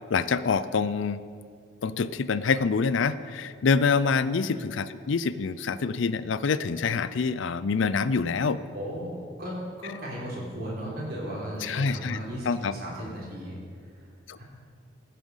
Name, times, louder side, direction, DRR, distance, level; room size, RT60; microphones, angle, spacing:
voice 1, 0.1-1.2 1.8-8.6 11.6-12.2 12.5-12.7 14.3-14.4, left 5 dB, 65° left, 15 dB, 0.5 m, -26 dB
voice 2, 8.7-9.5 9.8-13.6 14.4-14.5, equal, 50° right, -4 dB, 3.7 m, -36 dB
15.0 x 7.7 x 5.5 m, 2.1 s
head